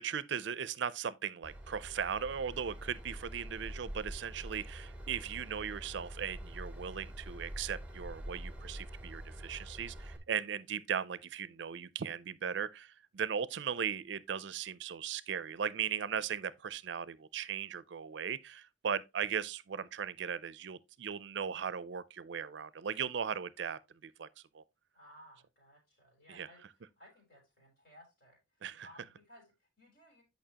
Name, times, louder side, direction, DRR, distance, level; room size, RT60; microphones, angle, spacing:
voice 1, 0.0-24.3 24.5-24.6 26.3-26.5 28.6-28.9, right 7 dB, 65° right, 0.4 m, -38 dB
Train / Engine, 1.4-10.2, right 1 dB, 5° right, 0.9 m, -46 dB
voice 2, 24.9-30.2, equal, 55° left, 3.8 m, -60 dB
8.9 x 5.4 x 2.8 m
head